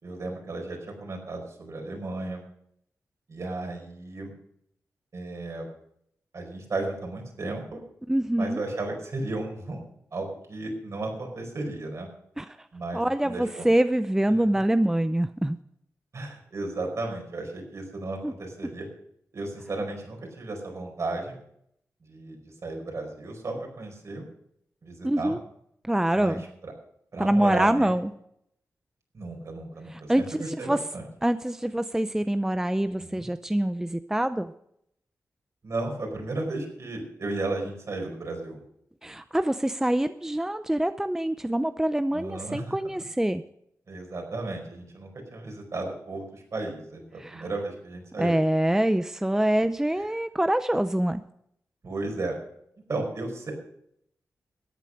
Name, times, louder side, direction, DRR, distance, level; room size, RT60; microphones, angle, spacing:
voice 1, 0.0-2.4 3.3-4.3 5.1-5.7 6.3-7.8 8.4-9.8 10.1-12.1 12.7-13.7 16.1-18.9 19.3-21.4 22.0-22.4 22.6-24.3 24.8-25.3 26.1-26.7 27.1-27.9 29.1-31.0 33.0-33.3 35.6-38.6 42.1-42.7 43.9-48.3 51.8-52.3 52.9-53.5, right 2 dB, 60° right, 2 dB, 4.8 m, -34 dB
voice 2, 8.1-8.6 12.4-12.7 12.9-15.6 18.2-18.3 25.0-25.4 25.8-26.4 27.2-28.1 29.9-30.8 31.2-34.5 39.0-43.4 47.2-47.4 48.2-51.2, right 1 dB, 10° right, 11 dB, 0.6 m, -25 dB
13.5 x 8.9 x 6.4 m, 0.71 s
cardioid pair, 70°, 6 cm